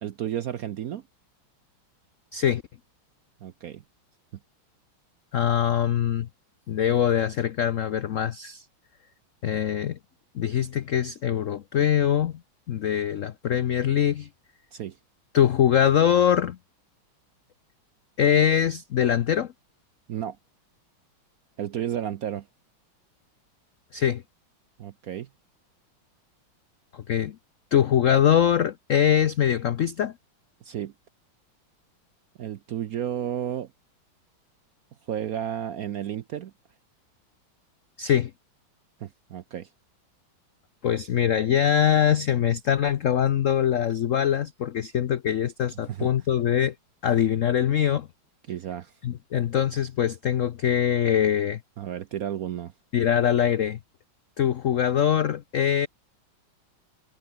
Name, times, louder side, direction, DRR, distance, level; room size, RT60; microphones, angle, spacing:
voice 1, 0.0-1.0 3.4-3.8 14.7-15.0 20.1-20.4 21.6-22.5 24.8-25.3 30.6-30.9 32.4-33.7 35.0-36.5 39.0-39.7 45.9-46.1 48.5-48.9 51.8-52.7, right 10 dB, 65° right, 0.9 m, -32 dB
voice 2, 5.3-6.3 6.7-8.6 9.4-10.0 10.3-12.4 12.7-14.3 15.3-16.6 18.2-19.5 23.9-24.2 26.9-27.4 27.7-30.1 38.0-38.3 40.8-46.7 47.0-48.1 49.0-51.6 52.9-53.8 54.4-55.9, left 9 dB, 80° left, 0.7 m, -23 dB
omnidirectional pair, 2.2 m